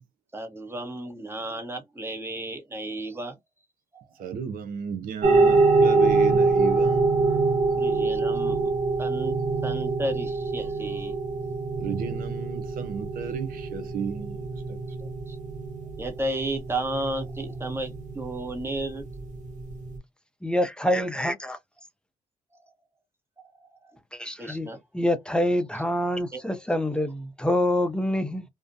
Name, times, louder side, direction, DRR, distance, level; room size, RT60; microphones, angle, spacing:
voice 1, 0.3-3.4 3.9-4.0 7.8-8.7 9.0-9.4 9.6-11.2 15.0-15.4 16.0-19.1 23.4-23.5 24.4-24.8 25.7-25.8 26.3-27.1, right 1 dB, 15° right, 1.0 m, -33 dB
voice 2, 4.2-7.1 11.8-14.8, right 7 dB, 70° right, 0.7 m, -34 dB
sound 1, 5.2-20.0, right 3 dB, 55° right, 1.0 m, -25 dB
voice 3, 20.4-21.6 24.2-24.7 24.9-28.4, left 1 dB, 5° left, 0.5 m, -26 dB
2.4 x 2.1 x 2.6 m
cardioid pair, 80°, 15 cm